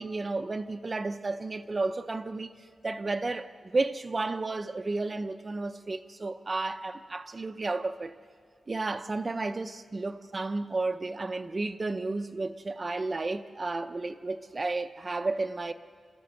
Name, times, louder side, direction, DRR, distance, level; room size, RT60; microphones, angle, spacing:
voice 1, 0.0-8.1 8.7-15.7, right 3 dB, 35° right, 0.7 m, -32 dB
27.5 x 13.5 x 7.9 m
wide cardioid pair, 105°, 0 cm